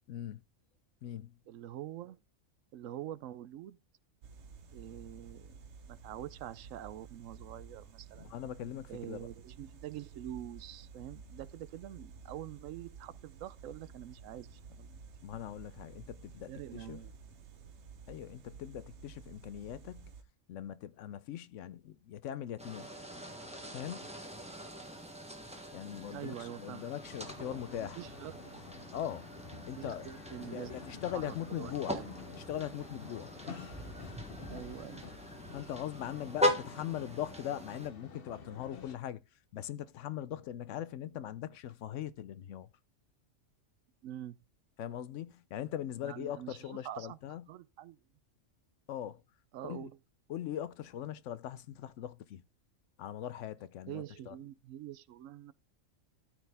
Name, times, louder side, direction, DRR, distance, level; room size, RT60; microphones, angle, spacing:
voice 1, 0.1-0.4 1.0-1.4 8.2-9.3 15.2-17.0 18.1-20.1 20.5-22.9 23.7-24.1 25.7-28.0 28.9-29.3 29.6-30.1 30.4-32.0 32.3-33.3 35.5-39.2 39.5-42.7 44.8-47.4 48.9-49.2 49.6-49.9 50.3-52.4 53.0-54.4, left 11 dB, 75° left, 0.9 m, -41 dB
voice 2, 1.5-2.2 2.7-3.8 4.7-5.6 5.9-8.3 8.9-15.0 16.5-17.1 26.1-26.9 27.5-28.7 29.8-30.8 31.3-32.1 34.5-35.1 44.0-44.4 46.0-47.2 47.5-48.0 49.5-49.9 53.9-55.5, right 12 dB, 90° right, 1.0 m, -45 dB
sound 1, 4.2-20.2, right 5 dB, 65° right, 1.1 m, -52 dB
sound 2, 22.6-37.9, left 1 dB, 5° right, 1.3 m, -40 dB
sound 3, 27.0-39.0, left 5 dB, 50° left, 1.1 m, -50 dB
13.0 x 4.5 x 3.4 m
omnidirectional pair, 1.3 m